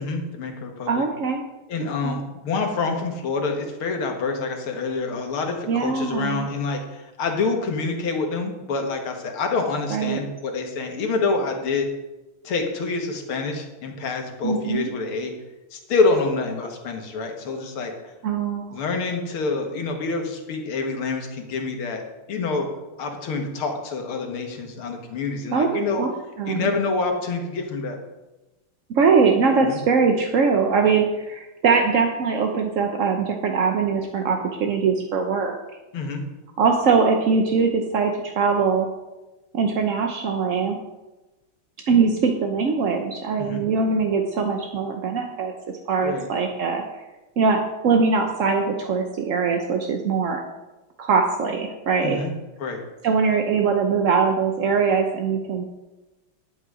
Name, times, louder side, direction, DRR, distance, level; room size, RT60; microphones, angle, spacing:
voice 1, 0.0-1.1 1.7-11.9 12.4-15.3 15.7-17.9 18.7-22.0 22.3-22.7 23.0-26.0 26.5-28.0 29.6-29.8 35.9-36.2 43.4-43.6 46.0-46.3 52.0-52.3 52.6-52.8, left 4 dB, 85° left, 3 dB, 2.4 m, -27 dB
voice 2, 0.9-1.4 1.8-2.2 5.7-6.5 9.9-10.2 14.4-14.9 18.2-18.8 25.5-26.1 26.4-26.7 28.9-35.6 36.6-38.9 39.5-40.8 41.9-45.5 45.9-46.8 47.4-50.4 51.0-52.2 53.0-55.6, right 5 dB, 55° right, 3 dB, 0.9 m, -22 dB
11.0 x 8.8 x 4.9 m, 1.1 s
omnidirectional pair, 2.3 m